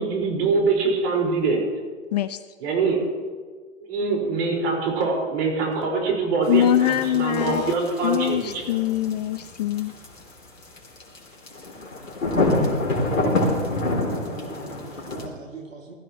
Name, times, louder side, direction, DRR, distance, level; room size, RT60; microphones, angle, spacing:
voice 1, 0.0-1.6 2.6-3.0 3.9-8.8, right 4 dB, 55° right, 5.0 m, -24 dB
sound 1, 6.4-15.3, left 2 dB, 85° left, 3.2 m, -26 dB
voice 2, 6.5-7.7 8.0-9.9, left 11 dB, 35° left, 0.4 m, -23 dB
voice 3, 14.1-15.9, right 4 dB, 80° right, 2.6 m, -42 dB
19.5 x 14.0 x 3.1 m
hypercardioid pair, 115°, 39 cm